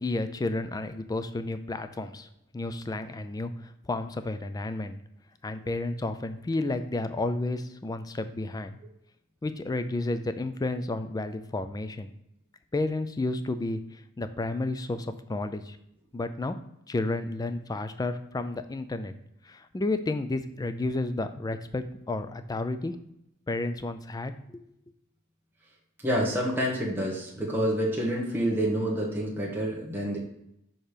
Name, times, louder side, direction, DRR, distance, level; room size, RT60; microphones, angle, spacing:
voice 1, 0.0-2.3 2.5-5.0 5.4-8.8 9.4-12.1 12.7-15.8 16.1-16.6 16.9-19.1 19.4-22.9 23.5-24.6, left 2 dB, 15° left, 10 dB, 0.3 m, -31 dB
voice 2, 26.0-30.2, equal, 10° right, -3 dB, 1.1 m, -28 dB
6.5 x 2.9 x 5.0 m, 0.80 s
head